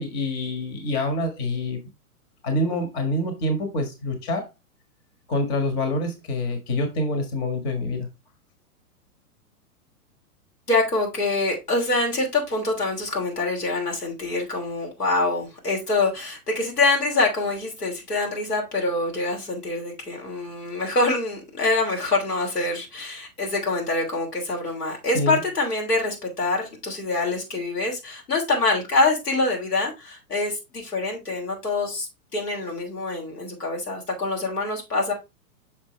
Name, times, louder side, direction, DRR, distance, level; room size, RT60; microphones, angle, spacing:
voice 1, 0.0-1.8 2.4-4.5 5.3-8.1 25.1-25.4, left 1 dB, 40° left, 6 dB, 1.6 m, -26 dB
voice 2, 10.7-35.1, left 2 dB, 90° left, -1 dB, 3.1 m, -25 dB
6.5 x 4.9 x 3.2 m, 0.24 s
hypercardioid pair, 120°, 46 cm